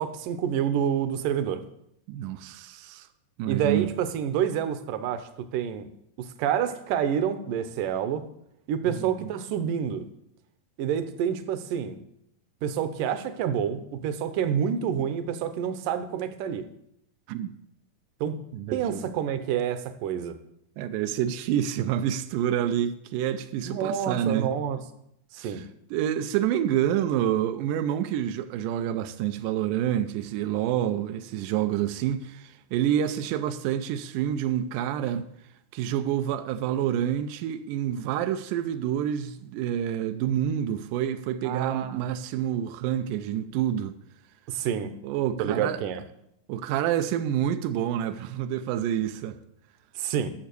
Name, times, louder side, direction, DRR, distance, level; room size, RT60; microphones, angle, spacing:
voice 1, 0.0-1.6 3.5-5.9 6.2-8.2 8.7-10.0 10.8-12.0 12.6-16.7 18.2-18.4 18.7-20.4 23.7-24.8 25.3-25.6 41.4-42.0 44.5-44.9 45.4-46.0 50.0-50.3, right 8 dB, 75° right, 2.1 m, -28 dB
voice 2, 2.1-3.1 3.4-3.9 8.9-9.3 17.3-17.5 18.5-19.1 20.8-24.5 25.4-25.6 25.9-35.3 35.7-44.0 45.0-45.8 46.5-49.4, right 10 dB, 90° right, 1.8 m, -28 dB
11.5 x 6.9 x 6.8 m
omnidirectional pair, 4.4 m